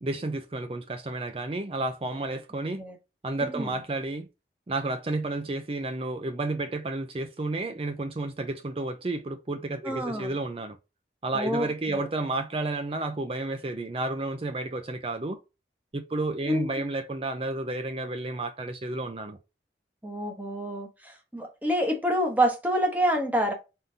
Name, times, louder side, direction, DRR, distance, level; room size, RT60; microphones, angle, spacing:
voice 1, 0.0-2.8 3.2-4.3 4.7-10.8 11.2-15.4 15.9-19.4, right 2 dB, 30° right, 0.4 m, -31 dB
voice 2, 9.8-10.4 11.3-12.1 16.5-16.7 20.0-23.5, equal, 10° right, 0.9 m, -27 dB
3.8 x 3.7 x 2.7 m
head